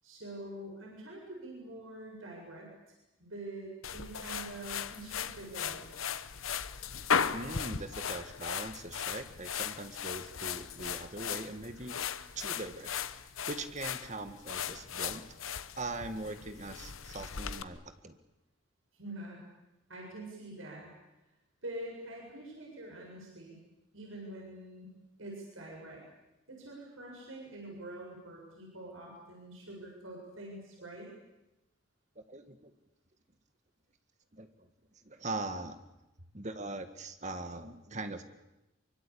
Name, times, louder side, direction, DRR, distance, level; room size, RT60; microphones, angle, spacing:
voice 1, 0.0-5.9 18.9-19.4 19.9-20.9 21.6-23.6 23.9-24.9 25.2-26.0 26.5-31.1, right 1 dB, 80° right, -1 dB, 7.4 m, -45 dB
sound 1, 3.8-17.6, left 7 dB, 85° left, 1.1 m, -37 dB
voice 2, 7.3-12.0 12.4-12.9 13.5-15.2 15.8-18.1 32.3-32.7 34.3-34.5 35.1-35.8 36.3-38.2, right 2 dB, 35° right, 9 dB, 1.7 m, -41 dB
24.5 x 24.0 x 8.6 m, 0.96 s
head